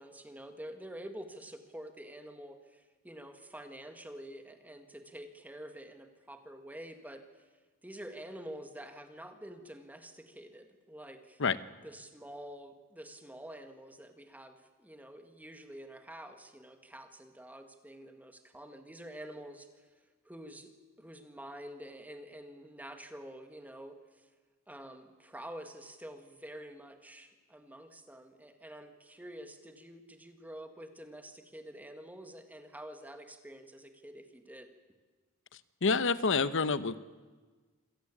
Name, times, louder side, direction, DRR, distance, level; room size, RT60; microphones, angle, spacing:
voice 1, 0.0-7.5 7.8-11.4 11.8-19.9 20.3-24.3 24.7-34.7, right 1 dB, 5° right, 7 dB, 1.9 m, -48 dB
voice 2, 35.5-37.0, left 4 dB, 60° left, 15 dB, 0.9 m, -28 dB
26.5 x 17.0 x 8.7 m, 1.4 s
head